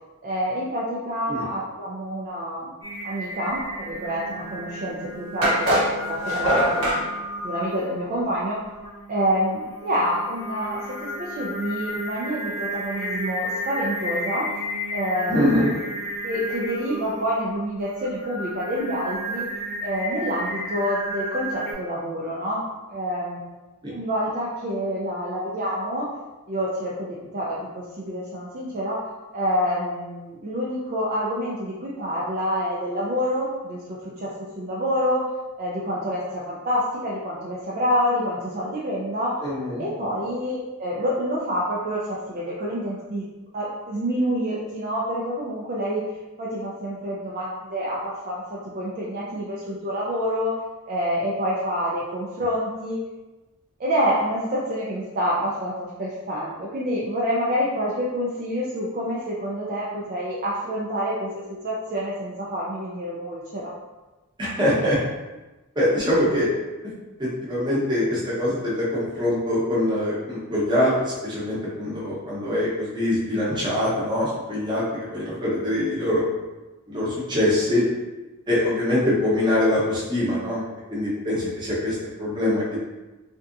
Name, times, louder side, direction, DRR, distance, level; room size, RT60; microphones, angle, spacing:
voice 1, 0.2-2.7 3.0-7.1 7.4-8.6 9.1-14.5 14.9-15.7 16.2-19.5 19.8-22.6 22.9-23.4 23.9-26.1 26.5-29.0 29.3-34.3 34.6-35.3 35.6-39.3 39.8-43.2 43.5-46.0 46.4-50.5 50.9-53.0 53.8-63.7 81.4-81.5, equal, 40° right, -6 dB, 0.4 m, -27 dB
Singing, 2.8-21.7, equal, 10° left, 0.7 m, -33 dB
sound 1, 4.6-4.7 5.4-7.0, equal, 65° right, 0.9 m, -22 dB
voice 2, 15.3-15.7 23.8-23.9 39.4-39.8 64.4-65.0 65.7-66.5 67.2-76.3 76.9-77.8 78.5-80.6 80.9-82.9, left 1 dB, 20° right, -7 dB, 0.9 m, -23 dB
3.4 x 2.7 x 2.5 m, 1.1 s
head